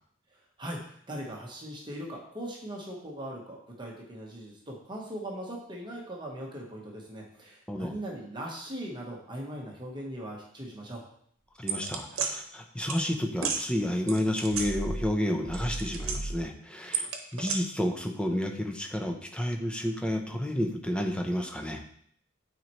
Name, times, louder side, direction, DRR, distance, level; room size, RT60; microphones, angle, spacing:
voice 1, 0.3-11.0, right 1 dB, 25° right, -2 dB, 1.1 m, -40 dB
voice 2, 11.6-21.8, left 1 dB, 5° left, 3 dB, 0.6 m, -30 dB
sound 1, 11.7-12.3 12.9-13.0 13.4-13.6 14.1-15.2 15.5-16.4 16.9-17.6, right 5 dB, 90° right, 0.9 m, -32 dB
9.0 x 4.4 x 3.1 m, 0.65 s
head